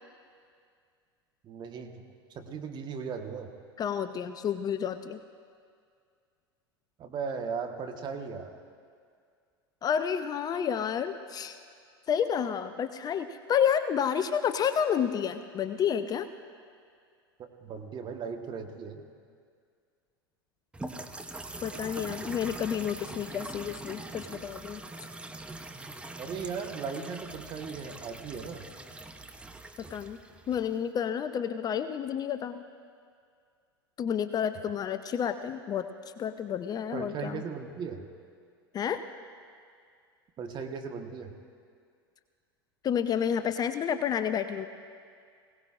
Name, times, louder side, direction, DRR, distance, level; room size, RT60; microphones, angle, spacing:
voice 1, 1.4-2.0 2.3-3.5 7.0-8.5 17.4-19.0 26.2-28.7 36.9-38.1 40.4-41.3, right 5 dB, 35° right, 4 dB, 1.3 m, -37 dB
voice 2, 3.8-5.2 9.8-11.6 12.1-16.3 21.6-24.8 29.9-30.2 30.5-32.6 34.0-35.9 36.2-37.4 38.7-39.0 42.8-44.7, left 8 dB, 30° left, 10 dB, 0.5 m, -30 dB
sound 1, 20.7-30.9, right 2 dB, 10° right, 0.8 m, -43 dB
20.5 x 17.5 x 2.5 m, 2.2 s
figure-of-eight pair, 80°, 13 cm